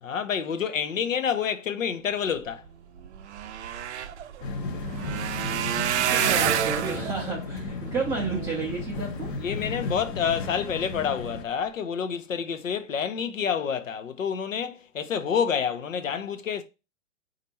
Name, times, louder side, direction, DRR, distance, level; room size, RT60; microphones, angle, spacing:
voice 1, 0.0-2.6 9.4-16.6, left 7 dB, 85° left, 0.7 m, -28 dB
sound 1, 2.7-2.8 3.0-9.4 9.9-10.3 10.8-11.0 11.2-11.3, right 10 dB, 65° right, 0.5 m, -29 dB
sound 2, 4.4-11.4, left 3 dB, 40° left, 0.7 m, -34 dB
voice 2, 6.1-9.3, right 4 dB, 10° right, 0.5 m, -31 dB
4.2 x 2.5 x 4.1 m
hypercardioid pair, 115°, 38 cm